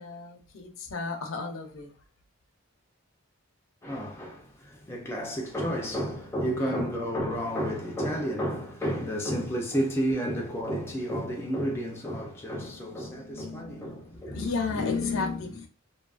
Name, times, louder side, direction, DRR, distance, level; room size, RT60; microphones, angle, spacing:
voice 1, 0.0-1.9 6.5-6.9 12.5-15.7, left 4 dB, 65° left, 0.6 m, -34 dB
voice 2, 3.8-14.5, equal, 10° left, 0.4 m, -31 dB
2.7 x 2.3 x 2.3 m
head